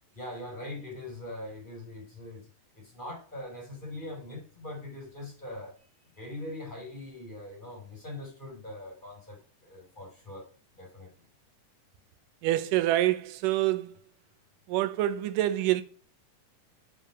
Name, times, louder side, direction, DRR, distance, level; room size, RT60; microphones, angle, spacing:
voice 1, 0.1-2.5 2.7-5.8 6.1-10.5 10.7-11.1, left 1 dB, 15° left, 3.4 m, -42 dB
voice 2, 12.4-14.0 14.7-15.8, right 14 dB, 85° right, 2.2 m, -26 dB
7.2 x 5.6 x 4.7 m
omnidirectional pair, 3.7 m